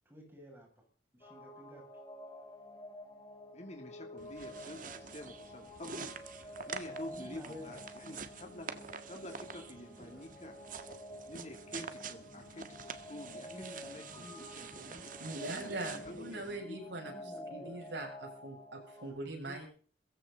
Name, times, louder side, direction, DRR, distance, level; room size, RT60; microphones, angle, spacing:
voice 1, 0.0-0.9 1.1-1.9 7.1-8.2 8.8-8.9 9.3-9.6 9.9-10.5 13.3-16.0 17.0-17.8 19.2-19.6, equal, 15° right, 0 dB, 7.7 m, -53 dB
sound 1, 1.2-19.1, equal, 25° left, 3.6 m, -49 dB
voice 2, 3.5-8.7 9.1-10.5 11.3-15.0 15.5-15.6 16.1-16.8, left 1 dB, 40° left, 3 dB, 3.3 m, -48 dB
sound 2, 4.2-16.6, right 5 dB, 50° right, 1.6 m, -47 dB
voice 3, 15.2-17.1 17.5-19.7, right 2 dB, 80° right, 1 dB, 7.7 m, -42 dB
22.5 x 15.0 x 4.2 m, 0.43 s
head